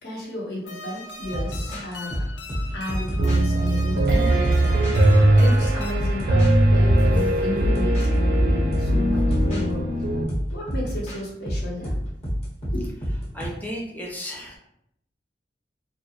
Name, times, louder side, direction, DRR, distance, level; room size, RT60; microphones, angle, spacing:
voice 1, 0.0-2.3 2.7-9.9 10.5-11.9 12.6-12.9, left 1 dB, 65° left, -3 dB, 0.8 m, -33 dB
sound 1, 0.6-5.9, left 2 dB, 80° left, 0.4 m, -39 dB
sound 2, 1.2-3.5 4.0-6.6 7.2-8.1 8.3-9.6 10.3-13.5, equal, 40° left, 0.9 m, -29 dB
Piano, 3.2-10.2, right 1 dB, 60° right, 0.4 m, -20 dB
voice 2, 13.3-14.6, equal, 10° left, -3 dB, 0.5 m, -34 dB
2.3 x 2.0 x 2.8 m, 0.76 s
head